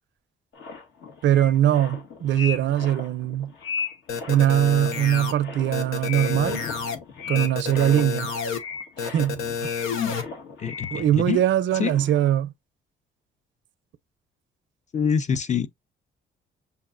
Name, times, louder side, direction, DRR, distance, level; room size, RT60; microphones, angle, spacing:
sound 1, 0.5-11.5 11.8-12.3, left 5 dB, 70° left, 1.6 m, -37 dB
voice 1, 1.2-3.5 4.3-6.6 7.3-8.3 9.0-9.7 10.9-12.5, right 11 dB, 70° right, 0.5 m, -22 dB
sound 2, 4.1-5.3 5.7-7.0 7.3-8.6 9.0-10.2, left 6 dB, 90° left, 0.8 m, -29 dB
voice 2, 10.6-11.4 11.7-12.0 14.9-15.7, left 7 dB, 35° left, 0.7 m, -25 dB
6.6 x 2.5 x 2.5 m
cardioid pair, 90°, 20 cm